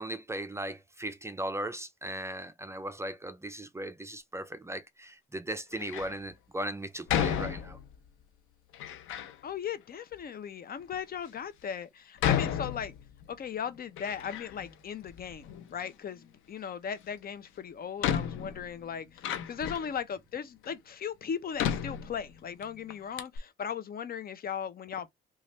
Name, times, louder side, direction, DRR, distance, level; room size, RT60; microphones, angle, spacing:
voice 1, 0.0-7.8, right 1 dB, 15° right, 0.4 m, -37 dB
Door, 5.7-6.2 7.1-8.1 8.7-9.4 10.1-10.2 10.9-11.0 12.2-13.3 13.7-14.7 15.0-15.9 17.2-17.3 18.0-20.0 20.6-20.7 21.6-22.6 22.9-23.0 23.2-23.4, left 9 dB, 85° left, 0.7 m, -33 dB
voice 2, 9.4-12.9 13.3-25.1, left 7 dB, 50° left, 0.6 m, -37 dB
3.1 x 2.4 x 4.1 m
cardioid pair, 90°, 20 cm